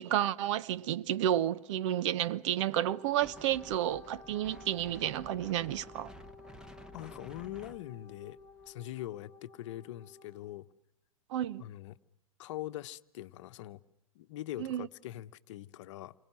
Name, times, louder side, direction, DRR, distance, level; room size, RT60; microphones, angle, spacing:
voice 1, 0.0-6.1 11.3-11.6 14.6-14.9, right 12 dB, 55° right, 0.9 m, -31 dB
Wind instrument woodwind instrument, 2.5-10.5, left 4 dB, 15° left, 1.8 m, -54 dB
Wind, 3.2-8.7, equal, 5° right, 1.3 m, -53 dB
voice 2, 6.9-8.4 8.7-10.7 11.6-12.0 12.4-13.8 14.1-16.1, left 14 dB, 60° left, 1.0 m, -43 dB
29.0 x 26.0 x 6.1 m
hypercardioid pair, 105°, 18 cm